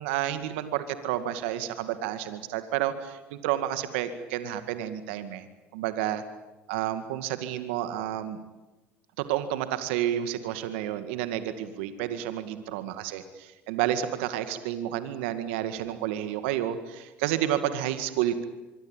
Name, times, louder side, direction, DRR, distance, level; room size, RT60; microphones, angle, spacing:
voice 1, 0.0-5.4 5.7-6.2 6.7-8.4 9.2-18.4, right 11 dB, 80° right, 10 dB, 2.1 m, -30 dB
24.5 x 24.0 x 9.1 m, 1.1 s
hypercardioid pair, 75°, 6 cm